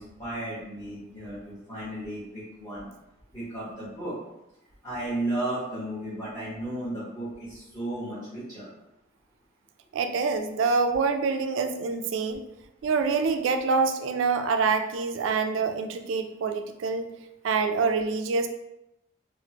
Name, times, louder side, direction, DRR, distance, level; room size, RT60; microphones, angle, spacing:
voice 1, 0.0-2.9 3.3-4.2 4.8-8.7, right 1 dB, 15° left, -12 dB, 0.9 m, -34 dB
voice 2, 9.9-12.4 12.8-17.1 17.4-18.5, right 4 dB, 75° right, 7 dB, 0.3 m, -26 dB
3.3 x 2.0 x 2.8 m, 0.91 s
head